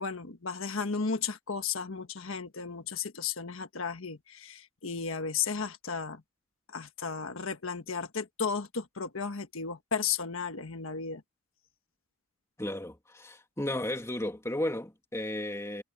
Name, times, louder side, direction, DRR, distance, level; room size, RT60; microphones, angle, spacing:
voice 1, 0.0-6.2 6.7-11.2, left 5 dB, 80° left, 1.4 m, -34 dB
voice 2, 12.6-15.8, left 1 dB, 15° left, 2.4 m, -34 dB
head